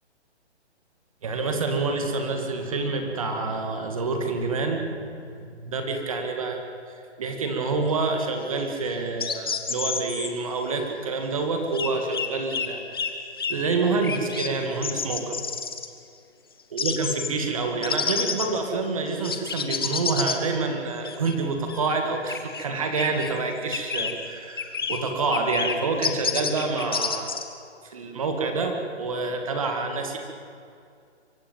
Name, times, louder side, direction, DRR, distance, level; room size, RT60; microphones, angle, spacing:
voice 1, 1.2-6.6 6.9-12.8 13.1-13.2 13.5-15.3 16.7-27.4 27.8-30.2, right 3 dB, 30° right, 4 dB, 1.9 m, -27 dB
sound 1, 9.2-10.3 11.7-12.7 12.9-13.1 13.4-13.5 14.0-14.5 14.8-15.9 16.8-17.3 17.8-18.6 19.2-20.4 21.0-21.3 21.7-21.9 22.3-22.7 22.9-23.3 23.7-24.1 24.6-25.0 25.3-25.8 26.0-27.4, left 6 dB, 20° left, 0.8 m, -29 dB
24.0 x 13.5 x 9.2 m, 2.4 s
hypercardioid pair, 175°, 34 cm